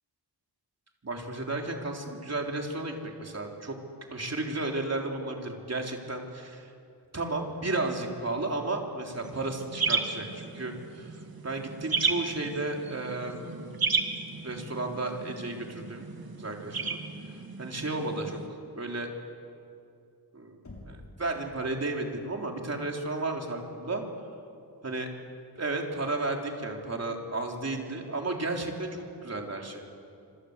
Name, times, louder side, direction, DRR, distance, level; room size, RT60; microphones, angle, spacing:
voice 1, 1.0-3.8 4.1-6.7 7.1-11.1 11.4-13.8 14.4-16.1 16.4-17.0 17.6-18.4 18.8-19.1 20.3-20.6 20.9-24.0 24.8-25.1 25.6-29.8, right 2 dB, 40° right, 1 dB, 3.7 m, -33 dB
sound 1, 9.2-18.5, right 4 dB, 60° right, 2.1 m, -34 dB
Knock, 20.6-21.3, left 2 dB, 45° left, 6.6 m, -46 dB
26.5 x 26.5 x 8.1 m, 2.4 s
wide cardioid pair, 125°, 41 cm